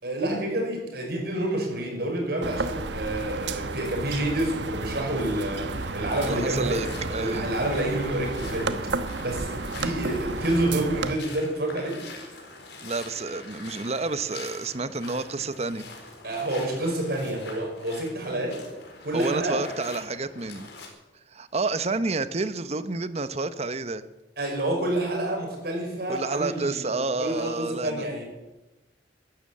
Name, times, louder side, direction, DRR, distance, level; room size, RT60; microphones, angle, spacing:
voice 1, 0.0-8.8 9.2-12.0 16.2-18.6 19.0-19.6 24.4-28.2, right 1 dB, 60° right, 1 dB, 5.9 m, -28 dB
sound 1, 2.4-11.1, right 3 dB, 85° right, 1.2 m, -32 dB
sound 2, 5.7-20.9, left 3 dB, 70° left, 4.3 m, -44 dB
voice 2, 6.2-7.5 12.8-15.9 19.1-20.7 21.3-24.0 26.1-28.1, right 3 dB, 35° right, 13 dB, 0.9 m, -29 dB
14.5 x 12.0 x 8.6 m, 1.0 s
head